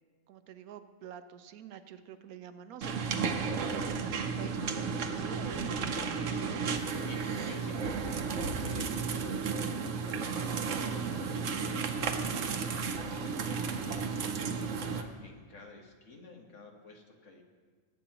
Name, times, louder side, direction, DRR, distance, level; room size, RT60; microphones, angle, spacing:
voice 1, 0.3-6.1, right 9 dB, 90° right, 10 dB, 1.2 m, -48 dB
sound 1, 2.8-15.0, right 5 dB, 60° right, 1.1 m, -33 dB
voice 2, 6.6-17.4, left 2 dB, 60° left, 1 dB, 1.7 m, -51 dB
21.0 x 9.0 x 3.0 m, 1.5 s
omnidirectional pair, 1.5 m